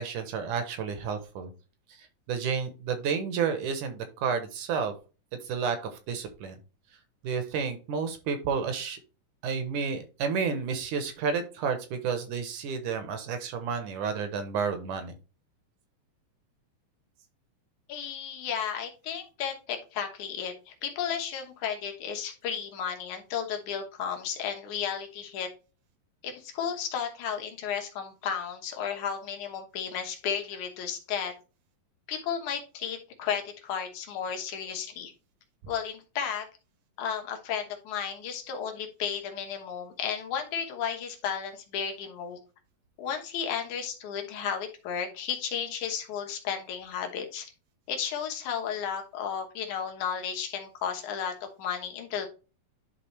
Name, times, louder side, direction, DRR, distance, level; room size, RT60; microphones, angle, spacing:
voice 1, 0.0-1.5 2.3-4.9 5.5-5.8 6.1-6.6 7.2-9.0 9.4-15.1, right 6 dB, 70° right, 8 dB, 2.2 m, -31 dB
voice 2, 17.9-25.5 26.2-31.3 32.1-35.1 35.7-36.5 37.0-42.4 43.0-47.5 47.9-52.3, left 7 dB, 65° left, 4 dB, 2.4 m, -33 dB
11.0 x 3.8 x 3.2 m, 0.33 s
omnidirectional pair, 4.1 m